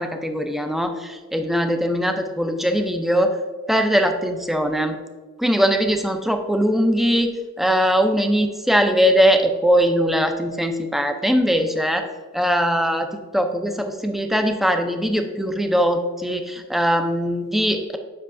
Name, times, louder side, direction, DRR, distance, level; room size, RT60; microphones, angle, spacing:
voice 1, 0.0-3.4 3.7-5.0 5.4-12.0 12.3-18.0, equal, ahead, 6 dB, 0.4 m, -21 dB
7.6 x 5.5 x 2.5 m, 1.4 s
head